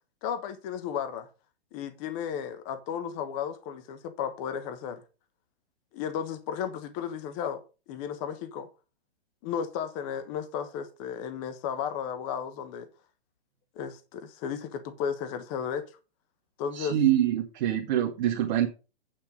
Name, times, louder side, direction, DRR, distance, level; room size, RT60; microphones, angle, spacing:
voice 1, 0.2-1.3 1.7-5.0 5.9-7.6 7.9-8.7 9.4-12.9 13.7-15.8 16.6-17.0, left 8 dB, 30° left, 1.2 m, -34 dB
voice 2, 16.7-18.7, right 11 dB, 40° right, 1.4 m, -25 dB
9.0 x 5.9 x 5.3 m
hypercardioid pair, 145°, 33 cm